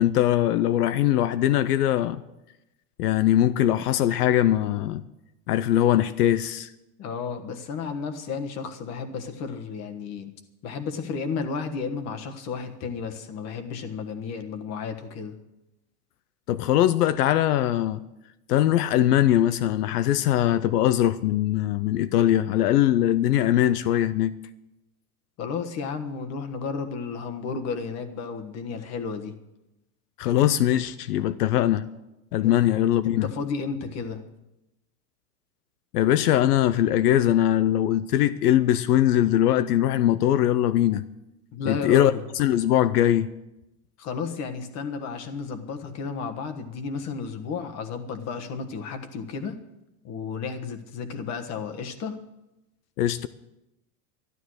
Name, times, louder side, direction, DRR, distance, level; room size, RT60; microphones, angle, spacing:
voice 1, 0.0-2.2 3.0-5.0 5.5-6.7 16.5-18.0 18.5-24.3 30.2-31.9 32.3-33.3 35.9-41.0 41.7-43.3 53.0-53.3, left 12 dB, 80° left, 0.7 m, -21 dB
voice 2, 7.0-10.3 10.6-15.3 25.4-29.3 32.4-32.6 33.0-34.2 41.5-42.2 44.0-49.6 50.0-52.2, left 5 dB, 35° left, 1.4 m, -32 dB
12.5 x 12.0 x 6.3 m
supercardioid pair, 140°, 45 cm